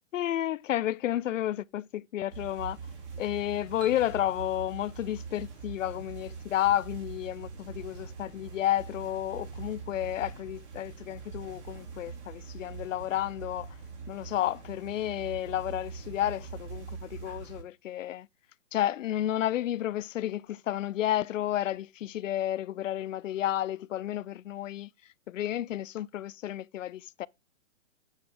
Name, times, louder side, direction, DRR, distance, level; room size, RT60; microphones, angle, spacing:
voice 1, 0.1-2.8 3.2-13.7 14.1-18.3 18.7-24.9 25.3-27.3, left 12 dB, 80° left, 0.5 m, -31 dB
sound 1, 2.3-17.6, right 5 dB, 65° right, 4.0 m, -43 dB
sound 2, 3.8-6.5, right 7 dB, 20° right, 0.4 m, -53 dB
9.4 x 3.4 x 6.4 m
hypercardioid pair, 155°, 37 cm